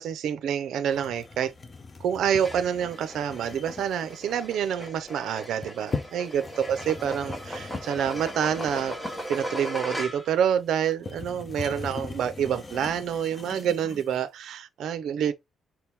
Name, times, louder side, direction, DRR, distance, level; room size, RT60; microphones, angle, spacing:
voice 1, 0.0-1.5 2.0-9.0 9.3-15.3, right 8 dB, 70° right, 0.6 m, -27 dB
sound 1, 0.9-14.2, left 3 dB, 25° left, 0.5 m, -40 dB
sound 2, 2.3-10.4, equal, 10° left, 0.9 m, -38 dB
4.5 x 2.9 x 3.4 m
cardioid pair, 145°, 0 cm